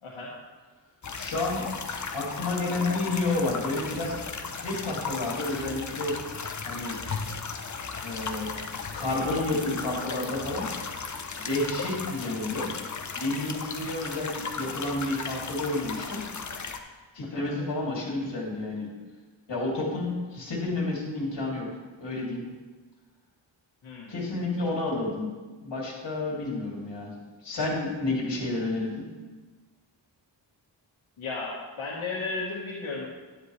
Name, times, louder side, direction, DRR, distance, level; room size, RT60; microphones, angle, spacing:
voice 1, 0.0-0.3 17.3-17.4 23.8-24.1 31.2-33.1, left 3 dB, 80° left, -6 dB, 1.7 m, -34 dB
sound 1, 1.0-16.8, left 5 dB, 40° left, 0.7 m, -36 dB
voice 2, 1.2-1.7 2.1-4.1 4.5-6.1 6.6-7.0 8.0-8.5 8.9-10.7 11.3-12.7 13.1-16.2 17.1-18.9 19.5-21.7 22.0-22.4 24.1-27.1 27.4-29.1, left 2 dB, 60° left, -3 dB, 3.0 m, -30 dB
10.5 x 10.5 x 3.3 m, 1.3 s
wide cardioid pair, 160°, 47 cm